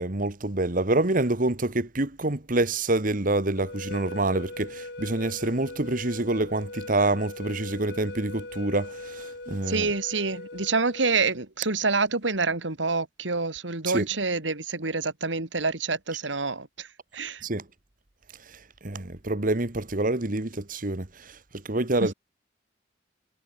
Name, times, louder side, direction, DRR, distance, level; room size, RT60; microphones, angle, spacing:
voice 1, 0.0-9.9 13.9-14.1 17.4-17.6 18.8-22.1, right 2 dB, 45° right, 1.6 m, -27 dB
sound 1, 3.6-11.3, left 2 dB, 60° left, 5.3 m, -40 dB
voice 2, 9.7-17.4 22.0-22.1, right 4 dB, 85° right, 2.5 m, -27 dB
head